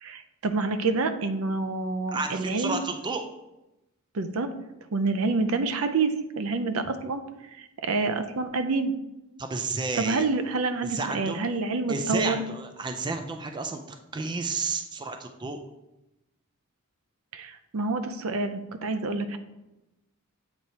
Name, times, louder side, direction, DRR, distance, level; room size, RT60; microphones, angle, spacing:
voice 1, 0.0-2.8 4.1-4.5 4.9-7.2 7.5-8.9 10.0-12.4 17.3-19.4, right 3 dB, 70° right, 9 dB, 0.5 m, -27 dB
voice 2, 2.1-3.3 9.4-10.3 10.8-11.4 11.9-15.6, right 3 dB, 20° right, 6 dB, 0.3 m, -31 dB
7.8 x 4.5 x 2.8 m, 0.94 s
head